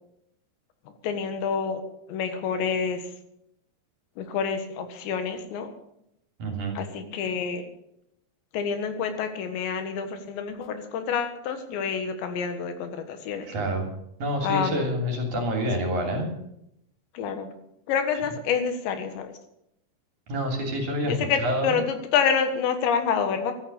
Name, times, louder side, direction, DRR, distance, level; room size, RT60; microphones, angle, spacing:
voice 1, 1.0-1.8 2.1-3.0 4.2-5.7 6.8-7.6 8.5-13.5 14.4-14.8 17.2-17.5 17.9-19.3 21.0-23.5, left 6 dB, 80° left, 8 dB, 3.8 m, -27 dB
voice 2, 6.4-6.8 13.5-13.9 14.2-16.3 20.3-21.8, equal, 45° right, 2 dB, 4.0 m, -27 dB
13.5 x 13.0 x 6.8 m, 0.77 s
omnidirectional pair, 5.1 m